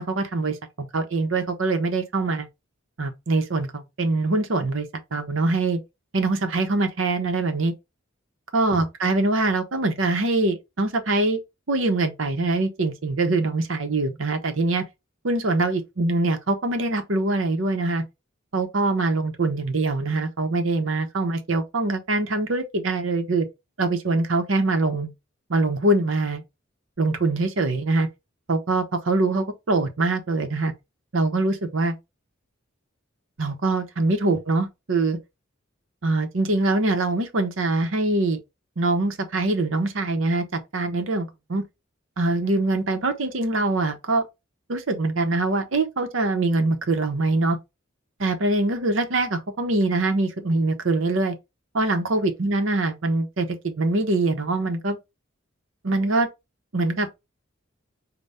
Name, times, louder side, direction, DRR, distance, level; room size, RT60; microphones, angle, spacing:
voice 1, 0.0-2.5 3.0-5.8 6.1-7.7 8.5-11.4 11.7-14.8 15.2-18.0 18.5-23.5 23.8-25.1 25.5-26.4 27.0-28.1 28.5-30.7 31.1-32.0 33.4-35.2 36.0-38.4 38.8-41.6 42.2-44.2 44.7-47.6 48.2-51.3 51.7-55.0 55.8-56.3 56.7-57.1, right 2 dB, 70° right, 0.8 m, -23 dB
5.4 x 2.2 x 3.4 m
head